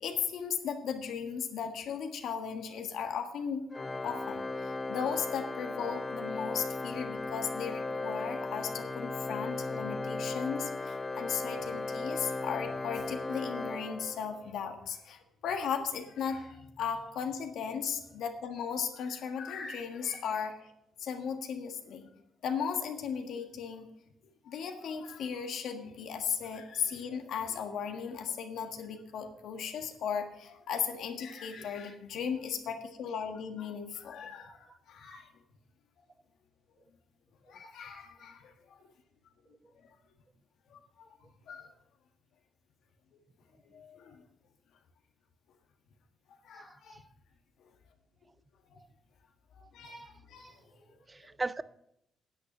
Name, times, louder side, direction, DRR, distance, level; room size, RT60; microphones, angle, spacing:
voice 1, 0.0-3.6 4.0-20.7 21.0-22.1 22.4-23.9 24.4-35.3 37.5-38.9 39.8-40.0 40.7-40.8 41.5-41.7 43.6-44.2 46.4-47.0 48.7-48.8 49.7-50.6, left 7 dB, 75° left, 1.6 m, -37 dB
Organ, 3.7-14.5, left 3 dB, 20° left, 0.6 m, -36 dB
voice 2, 31.5-31.9 34.4-35.2 37.5-38.1 41.6-41.8 46.5-47.0 49.6-50.5 51.1-51.6, right 3 dB, 25° right, 0.5 m, -43 dB
9.9 x 8.5 x 6.0 m
cardioid pair, 85°, 0 cm